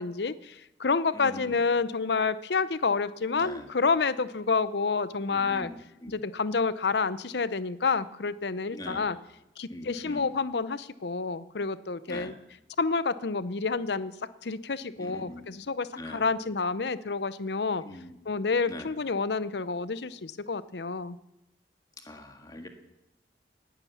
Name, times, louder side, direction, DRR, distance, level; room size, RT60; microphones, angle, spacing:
voice 1, 0.0-5.7 6.1-9.2 9.6-12.3 12.8-14.1 14.4-17.8 18.3-21.2, left 4 dB, 70° left, 16 dB, 0.7 m, -29 dB
voice 2, 1.1-1.6 3.4-3.7 5.3-6.2 8.7-9.1 9.7-10.3 12.1-12.3 15.0-15.5 15.9-16.3 17.8-18.2 18.7-18.9 22.0-22.7, left 1 dB, 20° left, 5 dB, 1.7 m, -42 dB
18.5 x 9.8 x 7.1 m, 0.93 s
head